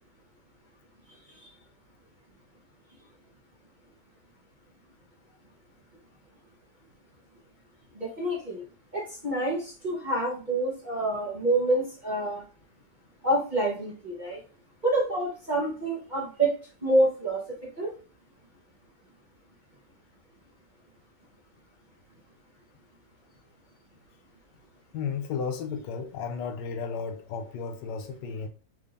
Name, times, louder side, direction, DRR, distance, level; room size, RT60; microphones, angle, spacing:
voice 1, 7.9-8.6 8.9-12.4 13.2-14.4 14.8-16.5 16.8-17.4 17.8-17.9, right 1 dB, 30° right, 1.0 m, -27 dB
voice 2, 24.9-28.5, left 5 dB, 75° left, 1.2 m, -33 dB
3.6 x 3.4 x 2.5 m
omnidirectional pair, 2.0 m